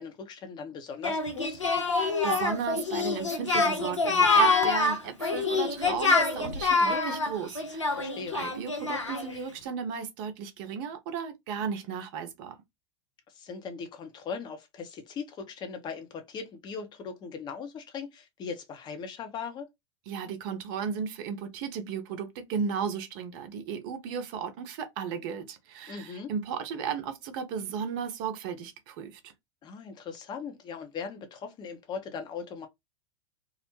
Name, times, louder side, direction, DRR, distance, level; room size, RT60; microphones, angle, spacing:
voice 1, 0.0-1.6 7.9-8.4 13.3-19.7 25.9-26.3 29.6-32.7, left 5 dB, 30° left, 0.6 m, -39 dB
Singing, 1.0-9.4, left 3 dB, 85° left, 0.5 m, -26 dB
voice 2, 2.0-12.6 20.1-29.3, right 7 dB, 50° right, 0.6 m, -35 dB
2.4 x 2.0 x 3.0 m
figure-of-eight pair, 85°, 15 cm